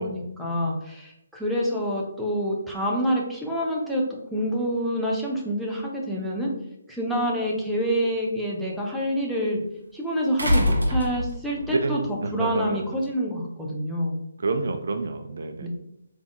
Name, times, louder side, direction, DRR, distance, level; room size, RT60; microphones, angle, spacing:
voice 1, 0.0-4.0 4.3-6.5 6.9-9.6 9.9-14.2 15.6-15.7, equal, ahead, -4 dB, 0.5 m, -27 dB
sound 1, 7.1-7.2 10.4-11.7 13.0-13.1, left 1 dB, 70° right, 0.9 m, -23 dB
voice 2, 11.7-12.8 14.4-15.7, right 3 dB, 50° right, 7 dB, 0.3 m, -28 dB
3.5 x 3.4 x 2.4 m, 0.82 s
figure-of-eight pair, 140°, 0 cm